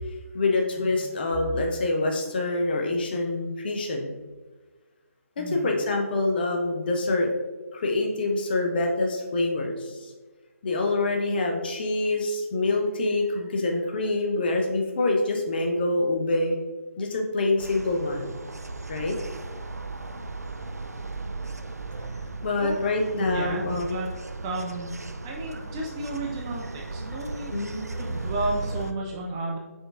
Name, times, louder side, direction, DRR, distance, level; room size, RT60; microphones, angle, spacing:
voice 1, 0.3-4.1 5.4-7.3 7.7-10.1 10.6-16.6 17.0-18.3 18.9-19.2 22.4-24.0 27.5-27.9, left 2 dB, 40° left, 2 dB, 0.7 m, -26 dB
voice 2, 5.4-5.7 22.5-22.9 23.2-24.1 24.4-24.9 25.2-27.6 27.9-29.6, right 2 dB, 15° right, -2 dB, 0.4 m, -33 dB
sound 1, 17.6-28.9, right 3 dB, 90° right, 0.4 m, -36 dB
5.2 x 3.7 x 2.5 m, 1.2 s
figure-of-eight pair, 145°, 8 cm